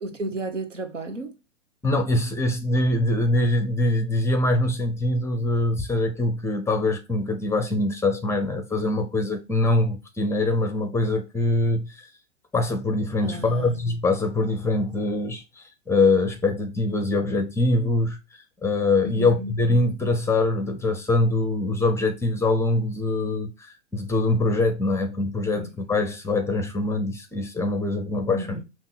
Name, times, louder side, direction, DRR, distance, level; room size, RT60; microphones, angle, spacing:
voice 1, 0.0-1.3 13.2-13.8 19.0-19.5 25.5-25.7 28.3-28.6, right 2 dB, 90° right, 1.0 m, -33 dB
voice 2, 1.8-12.1 12.5-18.2 18.6-28.6, left 2 dB, 5° left, 0.6 m, -23 dB
5.5 x 2.5 x 3.8 m
figure-of-eight pair, 105°, 36 cm